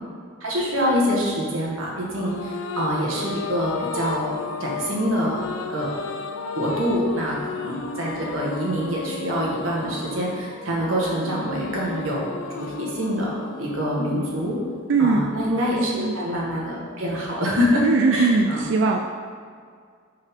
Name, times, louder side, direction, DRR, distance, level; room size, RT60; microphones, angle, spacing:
voice 1, 0.4-6.1 6.5-14.6 15.0-17.8 18.1-18.6, equal, 85° right, -4 dB, 1.5 m, -25 dB
sound 1, 2.0-15.6, left 5 dB, 80° left, 0.4 m, -34 dB
voice 2, 14.9-15.2 15.9-16.2 17.8-19.0, right 4 dB, 60° right, 3 dB, 0.3 m, -20 dB
5.4 x 5.3 x 3.6 m, 2.1 s
head